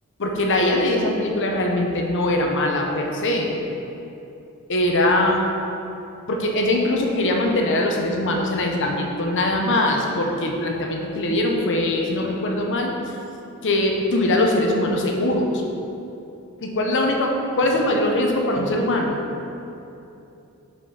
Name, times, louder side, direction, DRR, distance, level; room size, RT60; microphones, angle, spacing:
voice 1, 0.2-3.6 4.7-5.4 6.3-12.9 13.6-15.6 16.6-19.2, left 1 dB, 60° left, 1 dB, 0.9 m, -22 dB
5.9 x 5.1 x 5.5 m, 2.7 s
head